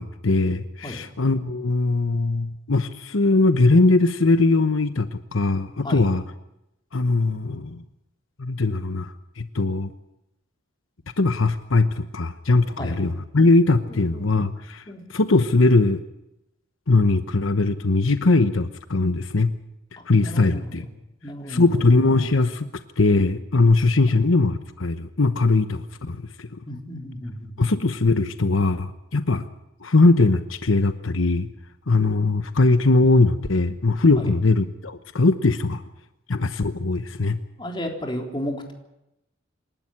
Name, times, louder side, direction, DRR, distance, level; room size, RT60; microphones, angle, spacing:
voice 1, 0.0-6.2 6.9-7.8 8.4-9.9 11.2-14.8 15.1-16.0 16.9-19.5 20.1-20.9 21.5-22.7 23.0-26.5 27.6-29.4 29.8-31.5 31.9-35.8 36.3-37.4, left 3 dB, 80° left, 10 dB, 1.0 m, -20 dB
voice 2, 13.9-14.3 14.9-15.2 20.0-20.9 21.2-21.7 24.0-24.1 26.7-27.5 34.2-34.3 37.6-38.7, equal, 25° left, 2 dB, 3.7 m, -33 dB
27.0 x 12.5 x 10.0 m, 0.88 s
head